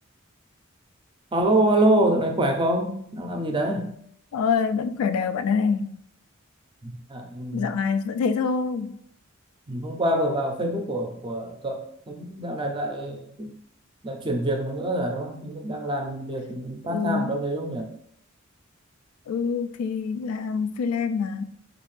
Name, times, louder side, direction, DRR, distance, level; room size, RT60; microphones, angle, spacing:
voice 1, 1.3-3.9 6.8-7.7 9.7-13.5 14.0-17.9, right 1 dB, 25° right, 0.4 m, -26 dB
voice 2, 4.3-6.0 7.5-9.0 16.9-17.4 19.3-21.4, left 5 dB, 90° left, 0.3 m, -26 dB
4.1 x 2.5 x 3.2 m
head